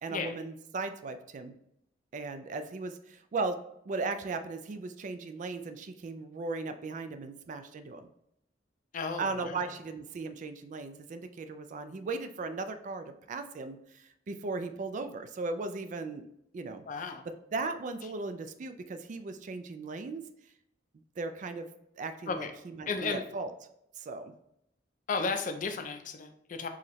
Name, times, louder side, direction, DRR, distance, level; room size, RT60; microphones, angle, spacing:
voice 1, 0.0-1.5 2.1-3.6 3.9-8.1 9.2-16.3 16.5-16.8 17.5-20.2 21.2-21.7 22.0-23.5 24.0-24.3, right 3 dB, 45° right, 9 dB, 0.3 m, -37 dB
voice 2, 8.9-9.6 16.9-17.3 22.3-22.5 22.9-23.2 25.1-26.7, left 4 dB, 45° left, 6 dB, 0.4 m, -34 dB
4.8 x 2.8 x 3.0 m, 0.77 s
head